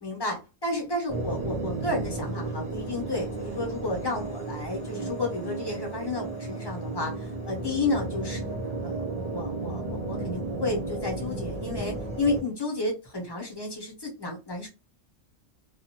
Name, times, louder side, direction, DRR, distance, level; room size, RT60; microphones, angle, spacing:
voice 1, 0.0-14.7, left 2 dB, 20° left, 0.9 m, -32 dB
sound 1, 1.1-12.4, right 2 dB, 40° right, 1.0 m, -33 dB
2.5 x 2.4 x 2.9 m
omnidirectional pair, 1.3 m